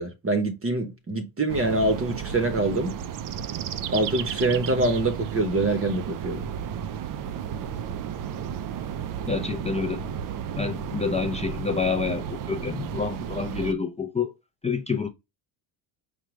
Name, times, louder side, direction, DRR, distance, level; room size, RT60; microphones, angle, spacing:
voice 1, 0.0-2.9 3.9-6.4, right 2 dB, 30° right, 0.8 m, -25 dB
sound 1, 1.5-13.7, right 8 dB, 45° right, 0.4 m, -33 dB
voice 2, 9.3-10.0 10.6-14.3 14.6-15.1, left 5 dB, 15° left, 0.4 m, -28 dB
4.8 x 2.2 x 3.0 m
cardioid pair, 110°, 48 cm